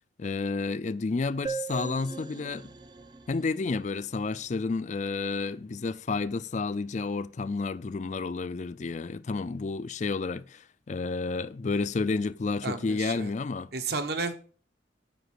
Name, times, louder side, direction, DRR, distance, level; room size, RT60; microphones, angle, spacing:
voice 1, 0.2-2.7 3.3-13.7, left 4 dB, 40° left, 0.4 m, -31 dB
sound 1, 1.5-5.0, right 5 dB, 25° right, 0.5 m, -40 dB
voice 2, 12.6-13.3 13.7-14.3, right 4 dB, 60° right, 1.1 m, -32 dB
7.9 x 5.2 x 6.4 m
head